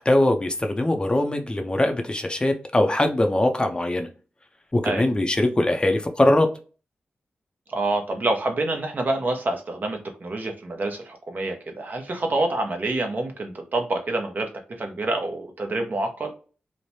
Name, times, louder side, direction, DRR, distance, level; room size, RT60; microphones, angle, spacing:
voice 1, 0.0-4.1 4.7-6.5, left 1 dB, 25° left, 0.5 m, -21 dB
voice 2, 7.7-14.5 14.8-16.3, right 2 dB, 50° right, 0.8 m, -27 dB
3.2 x 2.1 x 2.7 m
cardioid pair, 60°, 4 cm